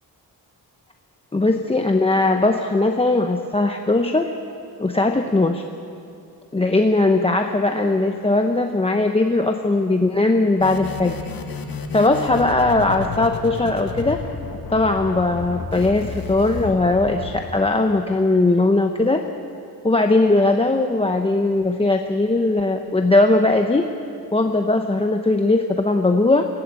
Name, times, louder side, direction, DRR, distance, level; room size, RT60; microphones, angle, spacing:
voice 1, 1.3-4.3 4.8-5.6 6.5-11.2 11.9-14.2 14.7-19.2 19.8-23.9 24.3-26.5, left 2 dB, 15° left, 4 dB, 0.8 m, -19 dB
sound 1, 10.6-17.4, left 5 dB, 65° left, 1.7 m, -32 dB
20.0 x 16.5 x 8.8 m, 2.6 s
wide cardioid pair, 145°, 37 cm